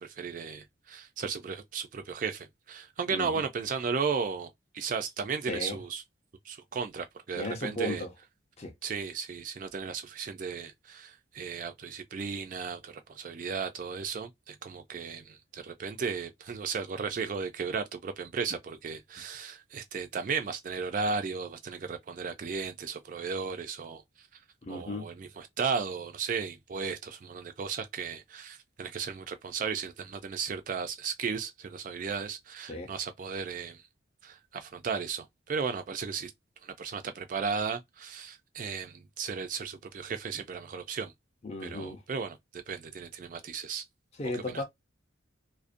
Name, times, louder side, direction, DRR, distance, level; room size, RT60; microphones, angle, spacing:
voice 1, 0.0-6.0 6.4-8.1 8.8-24.4 24.7-33.8 34.2-36.3 36.6-41.1 41.6-43.8 44.3-44.6, right 5 dB, 40° right, 0.3 m, -35 dB
voice 2, 5.5-5.8 7.4-8.1 8.6-8.7 24.7-25.0 32.7-32.9 41.4-42.0 44.2-44.6, left 1 dB, 30° left, 0.5 m, -35 dB
2.4 x 2.0 x 2.5 m
head